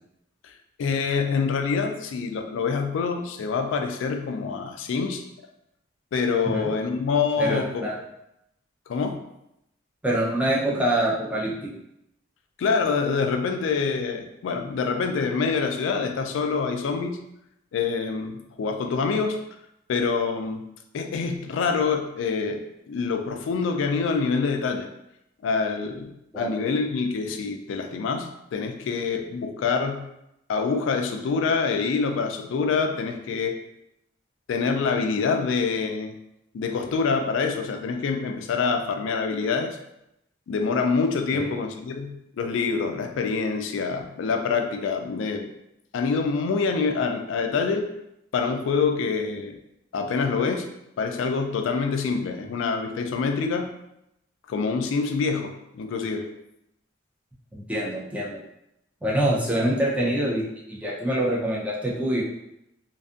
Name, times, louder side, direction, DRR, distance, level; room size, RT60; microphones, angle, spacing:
voice 1, 0.8-5.2 6.1-7.9 8.9-9.2 12.6-17.2 17.7-19.4 19.9-20.7 20.9-24.9 25.4-30.1 30.5-33.6 34.5-36.1 36.5-39.8 40.5-45.5 45.9-47.9 48.3-49.6 49.9-50.7 51.0-53.7 54.5-56.3, left 5 dB, 75° left, 6 dB, 0.3 m, -26 dB
voice 2, 7.4-8.0 10.0-11.5 26.3-26.5 41.3-41.5 57.5-58.4 59.0-62.2, right 1 dB, 5° right, -5 dB, 0.5 m, -25 dB
2.5 x 2.4 x 2.4 m, 0.83 s
head